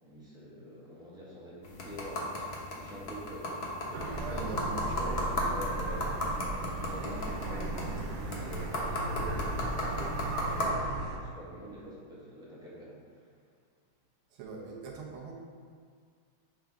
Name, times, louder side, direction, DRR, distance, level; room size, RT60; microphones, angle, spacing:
voice 1, 0.0-4.4 5.5-13.2, equal, ahead, -8 dB, 1.1 m, -45 dB
sound 1, 1.6-10.7, left 1 dB, 50° left, 0.7 m, -36 dB
sound 2, 3.9-11.2, right 2 dB, 65° right, 1.0 m, -36 dB
voice 2, 4.2-5.6 14.3-15.3, right 4 dB, 90° right, -1 dB, 1.8 m, -41 dB
8.0 x 3.7 x 3.5 m, 2.1 s
omnidirectional pair, 2.3 m